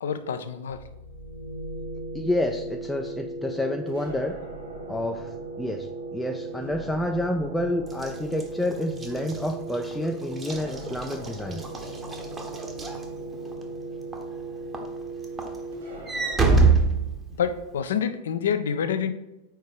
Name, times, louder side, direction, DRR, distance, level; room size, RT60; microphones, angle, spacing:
voice 1, 0.0-0.8 17.4-19.1, left 7 dB, 60° left, 10 dB, 0.5 m, -27 dB
sound 1, 0.7-16.3, right 2 dB, 65° right, 2.1 m, -37 dB
voice 2, 2.1-4.3 4.9-11.6, left 1 dB, 5° left, 3 dB, 0.4 m, -29 dB
Walk footsteps / Slam, 7.9-13.6 14.1-14.4 14.7-17.7, right 4 dB, 15° right, 0.9 m, -26 dB
4.6 x 4.5 x 4.7 m, 0.95 s
figure-of-eight pair, 90°, 0 cm